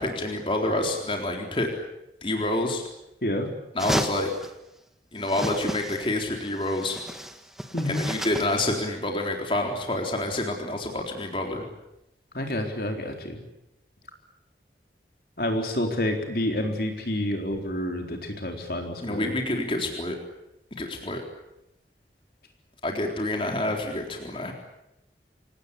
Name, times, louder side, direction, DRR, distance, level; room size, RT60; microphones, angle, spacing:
voice 1, 0.0-1.7 2.2-2.8 3.7-4.3 5.1-7.0 7.8-11.6 19.0-20.2 20.8-21.2 22.8-24.5, left 1 dB, 30° left, 2 dB, 3.9 m, -28 dB
sound 1, 3.8-4.5 5.2-6.2 6.4-8.6, equal, ahead, 1.6 m, -32 dB
voice 2, 12.3-13.4 15.4-19.3, left 1 dB, 55° left, 3 dB, 4.0 m, -28 dB
26.5 x 18.5 x 10.0 m, 0.88 s
head